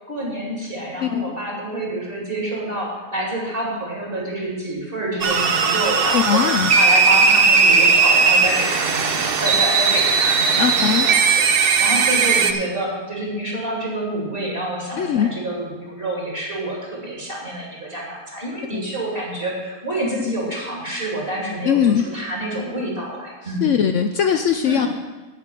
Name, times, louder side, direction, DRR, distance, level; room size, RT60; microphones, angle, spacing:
voice 1, 0.1-6.4 6.7-11.2 11.5-23.8 24.6-24.9, right 1 dB, 35° right, -4 dB, 2.9 m, -28 dB
voice 2, 1.0-1.3 6.1-6.7 10.6-11.1 15.0-15.3 18.7-18.9 21.6-22.1 23.6-24.9, left 8 dB, 65° left, 7 dB, 0.7 m, -20 dB
sound 1, 5.2-12.5, right 5 dB, 50° right, 0.7 m, -17 dB
8.1 x 6.8 x 8.3 m, 1.2 s
omnidirectional pair, 1.7 m